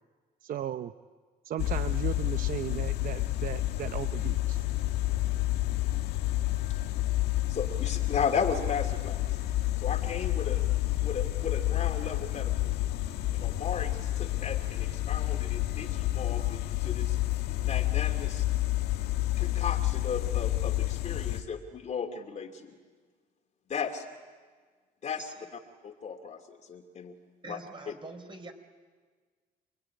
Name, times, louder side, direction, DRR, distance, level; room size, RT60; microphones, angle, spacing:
voice 1, 0.4-0.9 1.4-4.6, right 11 dB, 55° right, 11 dB, 0.8 m, -36 dB
sound 1, 1.6-21.4, left 16 dB, 80° left, 1.4 m, -29 dB
voice 2, 7.5-9.2 9.8-10.6 11.0-12.8 13.3-17.2 17.6-18.4 19.4-22.8 23.7-24.0 25.0-25.2 25.8-27.2 27.5-27.6 27.9-28.0, left 6 dB, 45° left, 2 dB, 2.7 m, -35 dB
voice 3, 25.2-25.5 27.4-28.5, right 3 dB, 30° right, 5 dB, 4.3 m, -44 dB
27.5 x 21.5 x 9.7 m, 1.5 s
cardioid pair, 110°, 17 cm